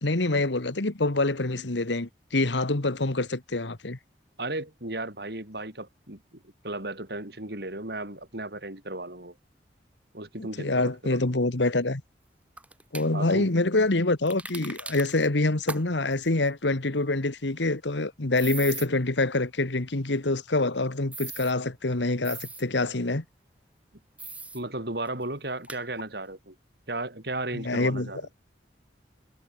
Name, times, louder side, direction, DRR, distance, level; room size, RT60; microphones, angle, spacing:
voice 1, 0.0-4.0 10.4-12.0 12.9-23.2 27.5-28.1, left 2 dB, 80° left, 1.6 m, -26 dB
voice 2, 4.4-9.3 10.1-11.2 13.1-13.5 24.5-26.5 26.9-28.2, right 2 dB, 60° right, 5.0 m, -35 dB
sound 1, 12.6-13.1 14.3-15.3 15.7-15.8 16.1-16.2 18.3-18.9 21.1-21.5 22.2-22.6 24.2-24.6 25.1-25.2 25.6-25.8, right 3 dB, 10° right, 1.1 m, -38 dB
head